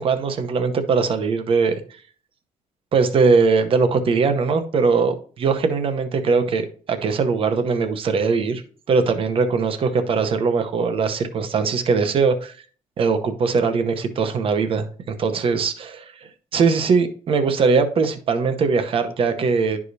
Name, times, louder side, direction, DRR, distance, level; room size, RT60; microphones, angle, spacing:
voice 1, 0.0-1.7 2.9-8.6 8.9-12.5 13.0-16.1 16.5-19.8, right 4 dB, 45° right, 8 dB, 0.8 m, -20 dB
11.0 x 4.8 x 2.7 m, 0.43 s
cardioid pair, 165°, 13 cm